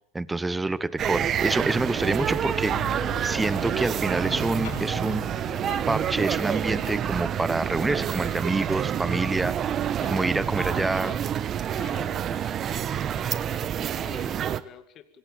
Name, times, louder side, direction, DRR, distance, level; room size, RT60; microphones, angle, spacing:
voice 1, 0.1-5.2 5.9-11.2, right 2 dB, 10° right, 18 dB, 1.1 m, -27 dB
sound 1, 1.0-14.6, right 9 dB, 35° right, 1.2 m, -28 dB
sound 2, 1.9-7.0, left 7 dB, 90° left, 6.5 m, -41 dB
voice 2, 10.0-11.2 11.8-15.2, left 9 dB, 45° left, 9 dB, 2.2 m, -45 dB
26.0 x 18.0 x 8.7 m, 0.66 s
supercardioid pair, 120°, 0 cm